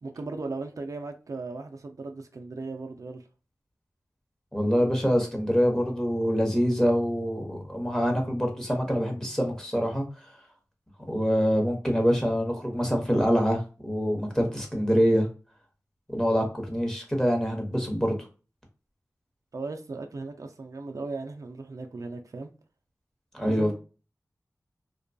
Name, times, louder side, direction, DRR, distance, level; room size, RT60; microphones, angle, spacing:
voice 1, 0.0-3.2 19.5-22.5 23.4-23.7, right 3 dB, 60° right, 0.4 m, -37 dB
voice 2, 4.5-10.0 11.1-15.3 16.1-18.1 23.3-23.7, equal, 10° left, 0.9 m, -25 dB
2.6 x 2.2 x 2.6 m
wide cardioid pair, 70°, 6 cm